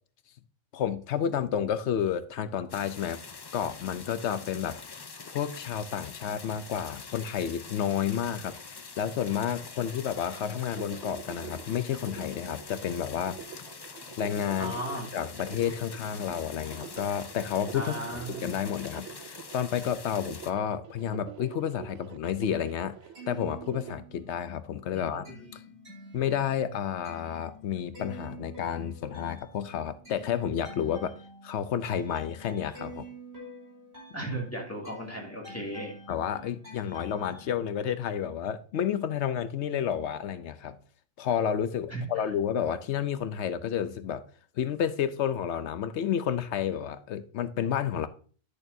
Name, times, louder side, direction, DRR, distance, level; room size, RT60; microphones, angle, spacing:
voice 1, 0.7-3.2 3.5-4.7 5.3-8.5 9.0-13.4 14.2-14.7 15.1-18.0 18.3-19.1 19.5-22.9 23.3-25.3 26.1-31.1 31.4-33.0 36.1-40.8 41.2-44.2 44.6-48.1, left 9 dB, 70° left, 0.9 m, -30 dB
sound 1, 2.7-20.5, left 4 dB, 40° left, 0.3 m, -45 dB
sound 2, 10.2-23.9, right 10 dB, 70° right, 0.9 m, -46 dB
voice 2, 14.6-15.1 17.7-18.5 24.9-25.5 34.1-36.0 41.9-42.3, right 1 dB, 10° left, 2.0 m, -36 dB
sound 3, 23.0-24.4 24.7-37.5, equal, 55° right, 3.4 m, -48 dB
10.5 x 6.6 x 2.7 m
omnidirectional pair, 1.3 m